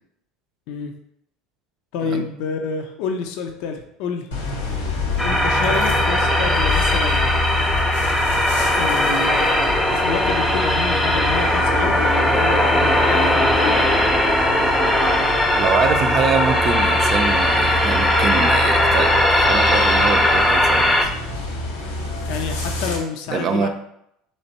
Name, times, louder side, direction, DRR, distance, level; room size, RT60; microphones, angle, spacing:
voice 1, 1.9-4.3 5.2-7.4 8.7-9.5 9.9-13.9 22.3-23.7, left 5 dB, 65° left, 5 dB, 0.6 m, -28 dB
sound 1, 4.3-23.0, left 1 dB, 85° left, 1.0 m, -27 dB
sound 2, 5.2-21.0, left 1 dB, 5° left, 0.7 m, -19 dB
voice 2, 15.5-21.1 23.3-23.7, right 6 dB, 45° right, 7 dB, 0.5 m, -24 dB
3.4 x 3.2 x 4.1 m, 0.75 s
hypercardioid pair, 85°, 0 cm